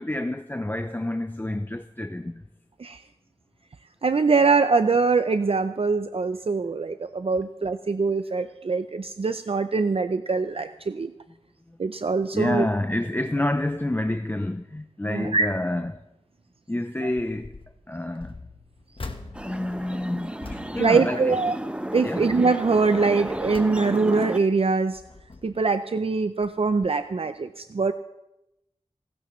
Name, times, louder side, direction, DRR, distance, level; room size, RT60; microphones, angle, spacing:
voice 1, 0.0-2.4 11.7-11.8 12.3-16.0 16.7-18.3 19.4-21.4 22.0-22.3, left 1 dB, 15° left, 0.5 m, -28 dB
voice 2, 4.0-11.1 11.8-12.7 15.1-15.5 20.8-21.6 21.9-25.0 25.4-27.9, right 4 dB, 55° right, 0.5 m, -23 dB
sound 1, 17.2-17.7 18.1-21.8 22.2-22.5 23.0-24.3 24.8-25.7 26.4-26.6 26.8-26.9, left 3 dB, 50° left, 1.3 m, -43 dB
sound 2, 19.3-24.4, right 1 dB, 10° right, 0.9 m, -33 dB
29.0 x 12.5 x 3.1 m
wide cardioid pair, 65°, 12 cm